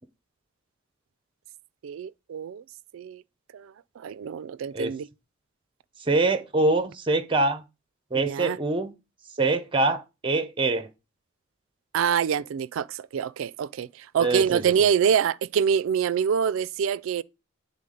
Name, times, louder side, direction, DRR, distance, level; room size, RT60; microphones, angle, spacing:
voice 1, 1.8-2.6 2.9-3.2 3.5-5.1 8.1-8.6 11.9-17.2, right 7 dB, 80° right, 0.3 m, -26 dB
voice 2, 6.1-7.6 8.1-8.9 9.4-10.9 14.2-14.6, right 2 dB, 25° right, 0.6 m, -24 dB
9.0 x 3.6 x 3.8 m
head